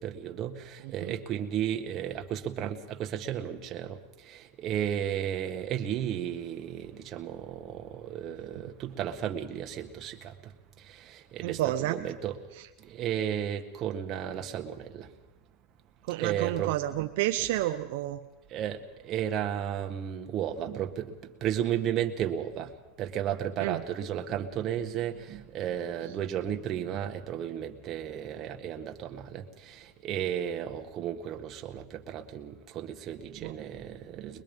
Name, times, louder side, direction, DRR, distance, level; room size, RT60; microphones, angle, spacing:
voice 1, 0.0-4.0 4.3-10.3 10.9-12.4 12.8-15.1 16.2-17.1 17.4-17.5 18.5-22.7 23.0-34.4, right 10 dB, 35° right, 5 dB, 1.7 m, -34 dB
voice 2, 11.4-12.0 16.1-18.2 23.6-23.8 33.4-33.5, right 15 dB, 65° right, 6 dB, 0.8 m, -30 dB
22.5 x 21.5 x 5.4 m, 1.1 s
supercardioid pair, 140°, 0 cm